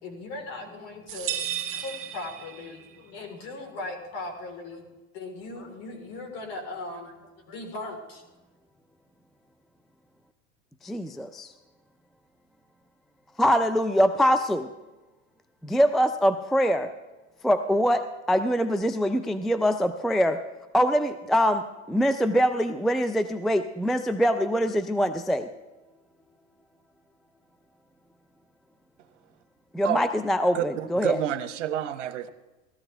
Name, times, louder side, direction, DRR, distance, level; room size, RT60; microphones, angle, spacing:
voice 1, 0.0-1.4 1.7-4.8 5.1-7.1 7.5-8.2, left 2 dB, 60° left, 3 dB, 3.9 m, -38 dB
sound 1, 1.1-3.0, right 10 dB, 40° right, 1.1 m, -34 dB
voice 2, 10.8-11.5 13.4-14.7 15.6-16.9 17.4-20.4 20.7-25.5 29.7-31.2, equal, ahead, 10 dB, 0.4 m, -23 dB
voice 3, 30.5-32.3, right 10 dB, 85° right, 9 dB, 1.2 m, -29 dB
17.0 x 13.5 x 3.4 m, 1.1 s
supercardioid pair, 115°, 35 cm